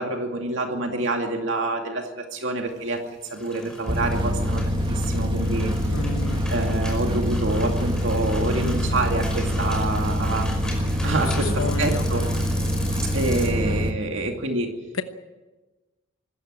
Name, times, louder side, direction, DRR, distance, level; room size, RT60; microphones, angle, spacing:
voice 1, 0.0-3.0 3.3-5.7 6.5-10.6 11.0-12.3 13.1-14.7, right 2 dB, 60° right, 3 dB, 2.4 m, -27 dB
sound 1, 3.0-13.5, left 1 dB, 5° left, 5.3 m, -39 dB
sound 2, 3.9-13.9, equal, 20° right, 1.2 m, -25 dB
voice 2, 5.9-6.4 11.0-12.1 14.9-15.0, left 4 dB, 70° left, 8 dB, 1.1 m, -31 dB
25.0 x 14.5 x 9.0 m, 1.2 s
head